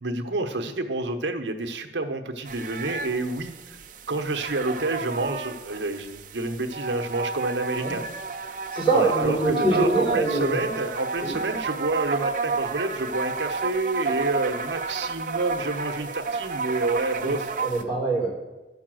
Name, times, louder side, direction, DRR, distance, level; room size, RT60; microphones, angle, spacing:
voice 1, 0.0-3.5 4.1-8.1 8.9-17.5, right 2 dB, 70° right, 5 dB, 1.0 m, -28 dB
sound 1, 2.5-17.8, right 4 dB, 45° right, 0.7 m, -31 dB
voice 2, 8.5-10.6 11.2-11.4 17.2-17.3 17.6-18.4, right 2 dB, 30° left, -6 dB, 3.8 m, -24 dB
11.5 x 5.8 x 7.6 m, 1.1 s
head